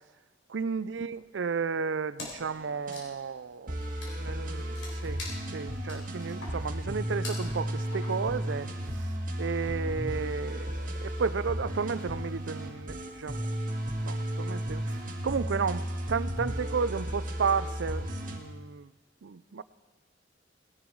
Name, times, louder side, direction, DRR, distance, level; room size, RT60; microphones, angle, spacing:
voice 1, 0.5-3.7 4.2-5.2 5.5-13.5 14.0-18.9 19.2-19.6, right 5 dB, 75° right, 16 dB, 0.5 m, -33 dB
Wood, 2.2-2.5 2.8-8.4, left 2 dB, 85° left, 3.9 m, -44 dB
sound 1, 2.5-2.9 3.7-18.4, equal, 50° right, 1.9 m, -34 dB
18.5 x 11.0 x 4.6 m, 1.3 s
head